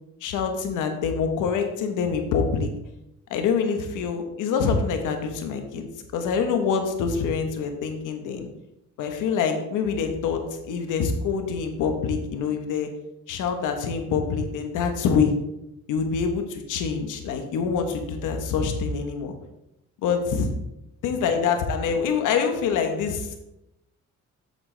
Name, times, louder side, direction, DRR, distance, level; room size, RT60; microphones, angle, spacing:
voice 1, 0.2-2.7 3.3-5.9 6.1-8.5 9.0-12.9 13.3-15.3 15.9-19.3 20.0-20.5 21.0-23.4, left 6 dB, 90° left, 6 dB, 1.1 m, -25 dB
7.9 x 7.2 x 3.3 m, 0.88 s
cardioid pair, 90°, 30 cm